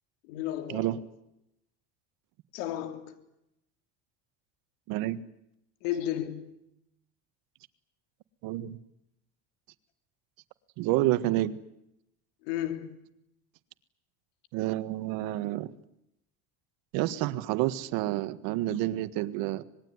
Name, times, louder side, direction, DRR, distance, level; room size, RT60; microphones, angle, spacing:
voice 1, 0.3-1.0 2.5-3.1 5.8-6.6 12.4-13.0, left 12 dB, 85° left, 3.2 m, -33 dB
voice 2, 4.9-5.2 8.4-8.8 10.8-11.6 14.5-15.7 16.9-19.6, right 15 dB, 70° right, 1.7 m, -29 dB
26.0 x 21.0 x 9.7 m
supercardioid pair, 100°, 36 cm